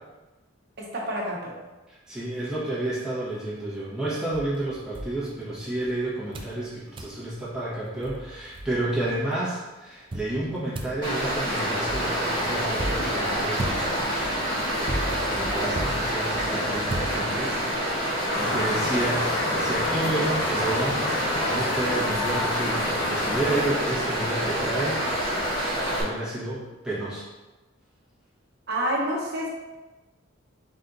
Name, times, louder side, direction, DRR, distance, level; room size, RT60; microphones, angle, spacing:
voice 1, 0.8-1.6 18.3-18.6 28.7-29.5, equal, 50° right, -2 dB, 0.9 m, -29 dB
voice 2, 2.1-14.0 15.0-25.0 26.0-27.2, right 1 dB, 5° right, -9 dB, 1.3 m, -31 dB
sound 1, 4.3-5.9 6.3-6.6 7.0-7.2 7.7-7.8 8.0-9.1 10.1-17.7, right 1 dB, 25° right, 0.3 m, -36 dB
Stream, 11.0-26.0, equal, 20° left, 1.3 m, -27 dB
sound 2, 18.3-23.7, left 2 dB, 65° left, 0.6 m, -30 dB
4.1 x 2.8 x 3.9 m, 1.1 s
head